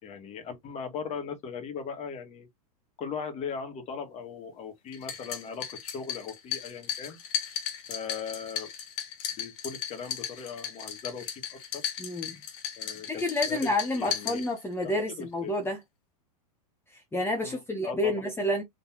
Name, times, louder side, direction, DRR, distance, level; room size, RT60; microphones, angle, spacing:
voice 1, 0.0-2.5 3.0-7.2 7.9-8.7 9.4-11.8 12.8-14.4 14.8-15.5 17.4-18.1, left 6 dB, 35° left, 1.9 m, -39 dB
sound 1, 4.9-14.9, left 9 dB, 60° left, 1.7 m, -36 dB
voice 2, 12.0-12.4 13.1-15.8 16.9-18.6, left 1 dB, 10° left, 1.0 m, -29 dB
4.0 x 3.3 x 3.0 m
hypercardioid pair, 115°, 20 cm